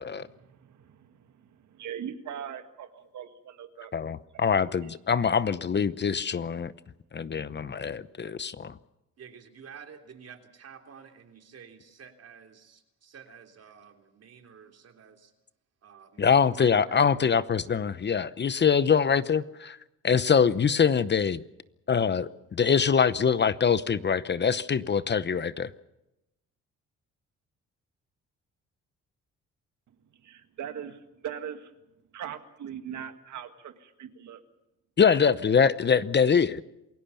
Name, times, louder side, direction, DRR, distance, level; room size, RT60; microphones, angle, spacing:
voice 1, 0.0-3.9 4.3-5.0 6.2-6.3 29.9-31.7 32.1-34.4, right 9 dB, 70° right, 8 dB, 1.9 m, -41 dB
voice 2, 3.9-6.7 7.1-8.7 16.2-19.8 20.0-21.4 21.9-25.7 35.0-36.6, left 6 dB, 35° left, 15 dB, 0.9 m, -24 dB
voice 3, 9.2-15.3 15.8-16.3 16.6-17.0, right 7 dB, 55° right, 5 dB, 3.4 m, -50 dB
27.5 x 17.0 x 7.0 m, 0.91 s
cardioid pair, 90°, 30 cm